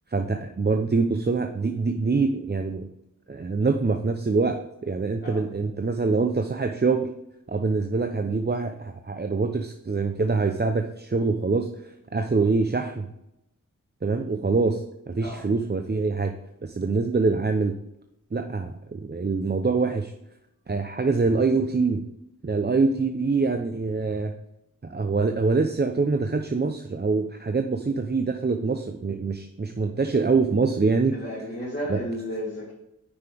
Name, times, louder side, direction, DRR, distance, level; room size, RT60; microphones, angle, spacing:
voice 1, 0.1-2.9 3.3-7.1 7.5-13.1 14.0-16.3 16.6-17.7 18.3-20.1 20.7-22.0 22.4-24.3 24.8-31.2 31.9-32.0, right 4 dB, 30° right, 6 dB, 0.7 m, -25 dB
voice 2, 31.1-32.7, equal, 35° left, -7 dB, 3.2 m, -33 dB
9.9 x 5.7 x 3.5 m, 0.84 s
cardioid pair, 55°, 32 cm